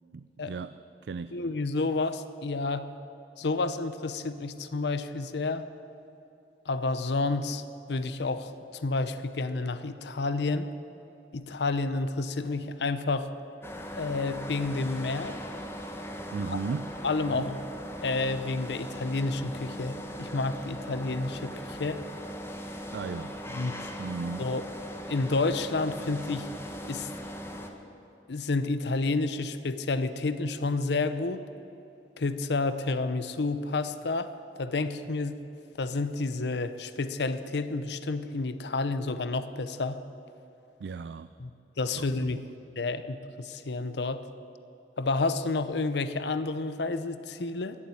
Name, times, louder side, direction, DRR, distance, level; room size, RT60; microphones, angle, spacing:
voice 1, 0.1-1.4 16.3-16.9 17.3-17.5 22.9-23.4 24.0-24.5 40.8-41.3 41.9-42.4, right 5 dB, 70° right, 13 dB, 0.4 m, -36 dB
voice 2, 1.3-2.9 3.4-5.7 6.7-7.6 7.9-10.7 11.3-13.3 13.9-15.4 16.5-16.6 17.0-17.6 18.0-22.0 23.5-23.7 24.4-24.6 25.1-26.5 26.9-27.1 28.3-31.4 32.2-34.3 34.6-35.4 35.8-40.0 41.4-41.5 41.8-42.4 42.8-44.2 45.0-47.8, left 3 dB, 70° left, 11 dB, 0.7 m, -30 dB
sound 1, 13.6-27.7, equal, 15° left, 1.2 m, -39 dB
16.5 x 7.3 x 9.8 m, 2.7 s
head